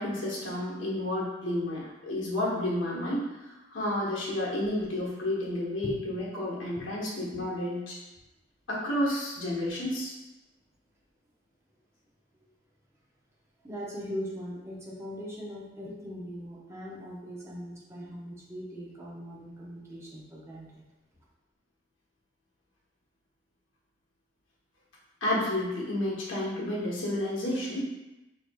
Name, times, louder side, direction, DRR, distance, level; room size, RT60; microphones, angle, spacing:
voice 1, 0.0-3.3 3.7-8.0 8.7-10.1 25.2-27.8, left 1 dB, 75° left, -5 dB, 1.1 m, -31 dB
voice 2, 13.6-20.8, equal, 15° right, -5 dB, 0.7 m, -40 dB
4.5 x 2.8 x 2.3 m, 1.0 s
head